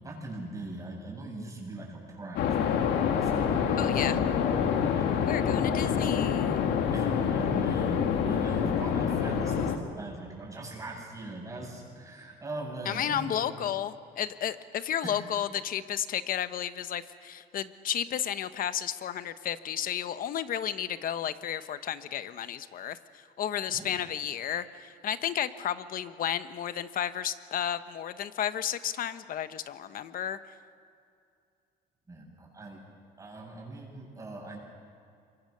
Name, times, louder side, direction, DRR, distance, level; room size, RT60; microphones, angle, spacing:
voice 1, 0.0-5.3 5.6-6.1 6.9-13.4 15.0-15.2 23.7-24.0 32.1-32.8 33.2-34.6, right 2 dB, 20° right, -2 dB, 8.0 m, -41 dB
sound 1, 2.4-9.8, left 7 dB, 80° left, 2.1 m, -27 dB
voice 2, 3.8-4.2 5.3-6.6 12.9-30.4, left 10 dB, 55° left, 12 dB, 1.1 m, -32 dB
27.5 x 23.5 x 6.8 m, 2.4 s
cardioid pair, 110°, 17 cm